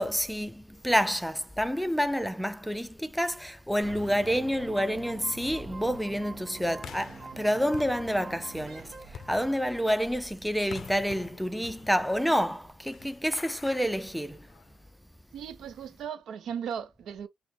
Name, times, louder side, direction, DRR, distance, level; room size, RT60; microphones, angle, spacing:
voice 1, 0.0-14.5, equal, ahead, 0.4 m, -28 dB
sound 1, 3.8-10.0, right 4 dB, 50° right, 1.0 m, -45 dB
sound 2, 6.8-14.9, left 8 dB, 60° left, 0.4 m, -48 dB
voice 2, 15.3-17.3, right 8 dB, 70° right, 0.6 m, -37 dB
5.9 x 2.0 x 3.3 m
cardioid pair, 90°, 0 cm